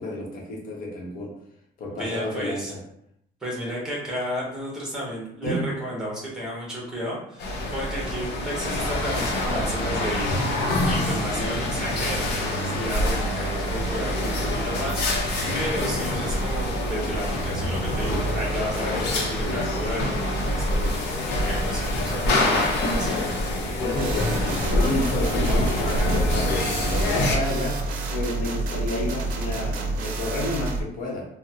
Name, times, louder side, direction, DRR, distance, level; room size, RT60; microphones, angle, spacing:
voice 1, 0.0-1.3 1.8-2.8 5.4-5.7 23.8-24.4 24.7-27.8 28.1-31.3, left 2 dB, 55° left, -2 dB, 0.9 m, -30 dB
voice 2, 1.9-2.7 3.4-10.4 10.8-23.2, equal, 5° right, -4 dB, 0.9 m, -33 dB
sound 1, 7.4-27.4, left 1 dB, 80° left, 0.7 m, -25 dB
sound 2, 23.9-30.8, right 2 dB, 60° right, 0.5 m, -29 dB
3.8 x 2.0 x 2.7 m, 0.74 s
cardioid pair, 175°, 17 cm